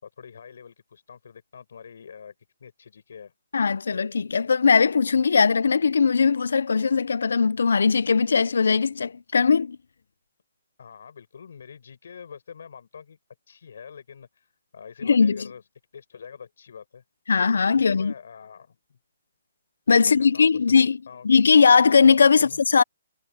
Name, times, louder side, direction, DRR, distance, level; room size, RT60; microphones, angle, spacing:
voice 1, 0.0-2.3 2.6-3.3 10.8-13.2 13.5-15.6 15.9-17.0 17.7-19.0 20.0-20.8 21.1-21.4 22.3-22.6, left 7 dB, 60° left, 5.4 m, -45 dB
voice 2, 3.5-9.8 15.0-15.5 17.3-18.1 19.9-21.0 21.2-22.8, left 5 dB, 80° left, 0.5 m, -19 dB
hypercardioid pair, 175°, 0 cm